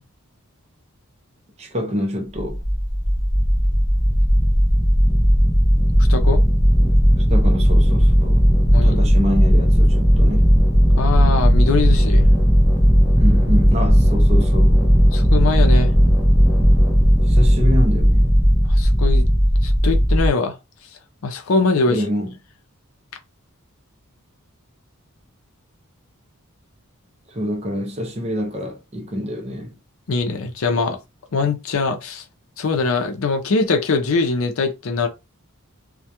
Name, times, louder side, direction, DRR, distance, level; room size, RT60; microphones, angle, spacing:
voice 1, 1.6-2.6 7.1-8.4 8.8-10.5 13.2-14.8 17.3-18.3 21.9-22.3 27.3-29.8, equal, 30° right, 0.6 m, -26 dB
sound 1, 2.4-20.3, equal, 10° left, 0.8 m, -15 dB
voice 2, 6.1-6.4 8.7-9.0 11.0-12.3 15.1-15.9 18.7-19.3 19.6-20.6 21.2-22.0 30.1-31.0 31.3-32.2 32.6-35.1, left 4 dB, 65° left, 0.5 m, -22 dB
2.3 x 2.1 x 2.8 m
head